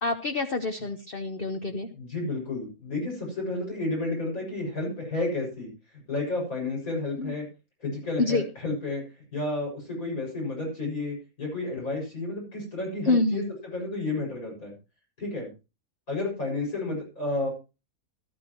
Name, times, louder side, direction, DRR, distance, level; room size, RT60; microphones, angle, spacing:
voice 1, 0.0-1.9 7.2-7.3 8.2-8.4 13.1-13.5, left 3 dB, 40° left, 6 dB, 1.1 m, -26 dB
voice 2, 1.9-7.5 7.8-9.0 9.3-14.7 15.2-15.5 16.1-17.5, left 2 dB, 65° left, -2 dB, 7.1 m, -31 dB
15.0 x 13.5 x 3.0 m, 0.29 s
omnidirectional pair, 1.6 m